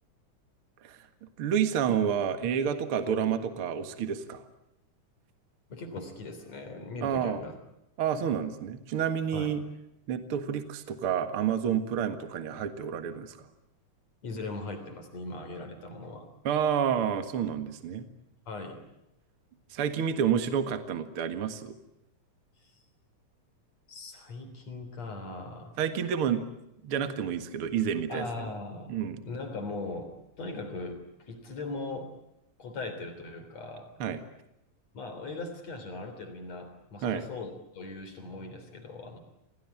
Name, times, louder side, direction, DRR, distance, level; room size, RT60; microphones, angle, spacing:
voice 1, 1.4-4.4 7.0-7.4 8.0-9.6 10.1-13.5 16.4-18.1 19.7-21.8 25.8-26.4 26.8-28.3 28.9-29.2 34.0-34.2 37.0-37.2, right 8 dB, 50° right, 9 dB, 2.3 m, -29 dB
voice 2, 5.7-7.5 9.3-9.6 14.2-16.3 18.5-18.8 22.6-22.7 23.9-25.7 28.1-29.0 29.3-32.1 32.6-33.9 34.9-39.2, left 3 dB, 55° left, 6 dB, 4.6 m, -39 dB
28.5 x 18.5 x 9.9 m, 0.85 s
omnidirectional pair, 3.6 m